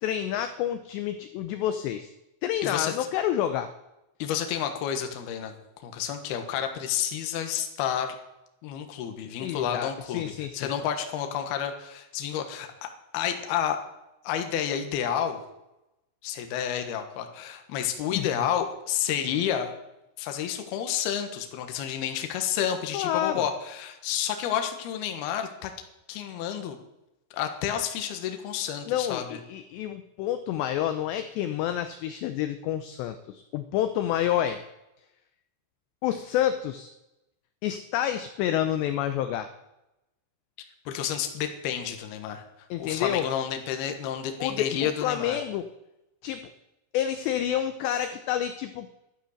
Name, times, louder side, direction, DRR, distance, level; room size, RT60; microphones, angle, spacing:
voice 1, 0.0-2.1 2.4-3.7 9.4-10.7 18.1-18.3 22.9-23.5 28.9-34.6 36.0-36.9 37.6-39.5 42.7-43.3 44.4-45.7 46.2-46.4 46.9-49.0, left 11 dB, 90° left, 9 dB, 2.4 m, -29 dB
voice 2, 2.6-3.0 4.2-5.5 5.8-8.2 8.6-13.8 14.2-15.4 16.2-19.7 20.2-25.7 26.1-26.8 27.3-29.4 40.9-42.5 42.8-45.4, left 9 dB, 65° left, 6 dB, 2.7 m, -30 dB
12.0 x 11.5 x 6.5 m, 0.91 s
omnidirectional pair, 5.8 m